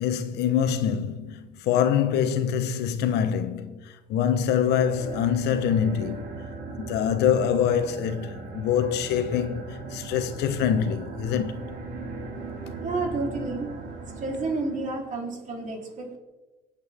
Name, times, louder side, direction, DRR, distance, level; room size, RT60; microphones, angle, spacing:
voice 1, 0.0-6.3 6.9-11.6, left 8 dB, 80° left, 1.3 m, -25 dB
sound 1, 4.6-15.1, right 3 dB, 70° right, 5.8 m, -38 dB
voice 2, 12.8-13.7 14.1-16.2, right 3 dB, 50° right, 3.8 m, -30 dB
25.0 x 8.8 x 3.7 m
cardioid pair, 110°, 17 cm